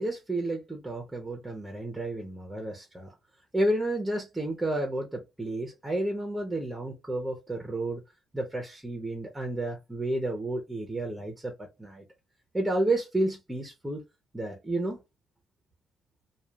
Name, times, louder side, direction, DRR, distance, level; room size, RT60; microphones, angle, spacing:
voice 1, 0.0-3.1 3.5-8.0 8.3-12.0 12.5-14.0 14.3-15.0, right 1 dB, 10° right, 0.8 m, -31 dB
3.0 x 2.4 x 2.4 m
cardioid pair, 90°, 0 cm